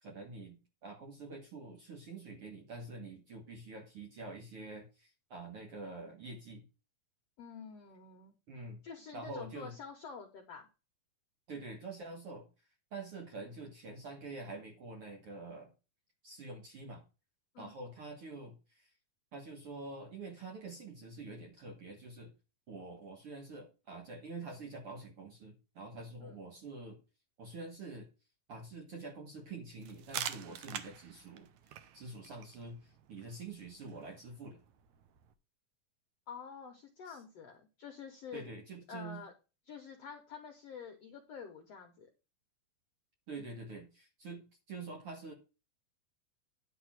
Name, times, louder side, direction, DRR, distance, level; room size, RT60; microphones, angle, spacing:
voice 1, 0.0-6.6 8.5-8.8 9.1-9.7 11.5-12.5 12.9-15.7 16.2-17.0 17.6-18.9 19.3-22.3 22.7-27.0 27.4-28.1 28.5-34.6 37.1-37.2 38.3-39.2 43.3-45.3, right 3 dB, 55° right, 2 dB, 1.6 m, -46 dB
voice 2, 7.4-10.7 17.5-17.7 26.2-26.4 36.3-38.5 38.9-39.3 39.7-42.1, left 6 dB, 90° left, 4 dB, 1.4 m, -48 dB
sound 1, 29.8-35.3, right 10 dB, 90° right, 1.6 m, -46 dB
10.5 x 3.6 x 7.4 m, 0.31 s
omnidirectional pair, 4.6 m